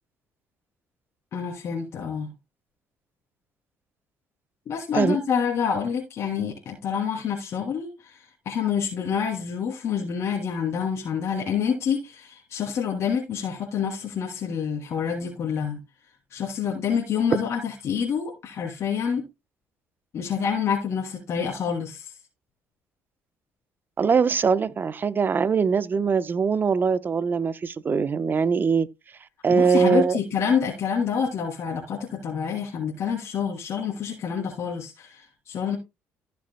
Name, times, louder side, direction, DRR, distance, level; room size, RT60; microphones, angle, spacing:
voice 1, 1.3-2.3 4.7-15.8 16.3-19.2 20.1-22.1 29.5-35.8, left 7 dB, 60° left, 2.8 m, -27 dB
voice 2, 24.0-28.9 29.4-30.2, right 5 dB, 40° right, 0.9 m, -22 dB
15.0 x 7.0 x 2.2 m
supercardioid pair, 75°, 5 cm